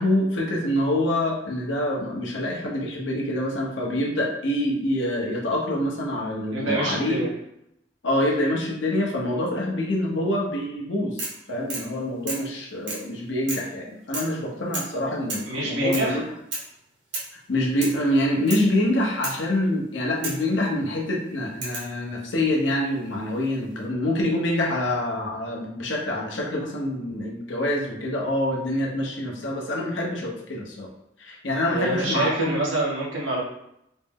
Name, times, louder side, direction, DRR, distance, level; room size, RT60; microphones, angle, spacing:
voice 1, 0.0-7.3 8.0-16.2 17.5-30.9 31.2-32.6, left 1 dB, 80° left, -1 dB, 0.9 m, -26 dB
voice 2, 6.5-7.3 15.4-16.2 31.7-33.4, right 2 dB, 85° right, -5 dB, 1.3 m, -26 dB
sound 1, 11.2-11.4 11.7-11.9 12.3-12.5 12.9-13.1 13.5-13.7 14.1-14.4 14.7-14.9 15.3-15.5 15.9-16.1 16.5-16.7 17.1-17.4 17.8-18.0 18.5-18.7 19.2-19.4 20.2-20.5 21.6-21.9 23.1-23.6, right 2 dB, 65° right, 1.3 m, -33 dB
4.2 x 2.1 x 3.6 m, 0.80 s
head